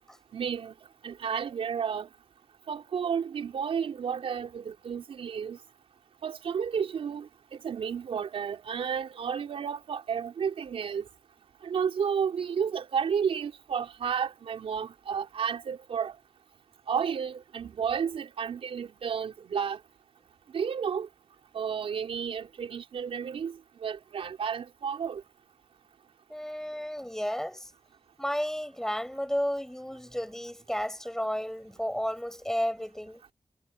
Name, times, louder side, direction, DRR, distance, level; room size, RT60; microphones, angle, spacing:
voice 1, 0.3-0.7 1.0-2.1 2.7-5.6 6.2-7.3 7.6-11.0 11.6-16.1 16.9-19.8 20.5-21.1 21.5-25.2, right 7 dB, 85° right, 4.0 m, -32 dB
voice 2, 26.3-27.7 28.2-33.2, equal, 5° left, 6.3 m, -32 dB
cardioid pair, 60°, 10 cm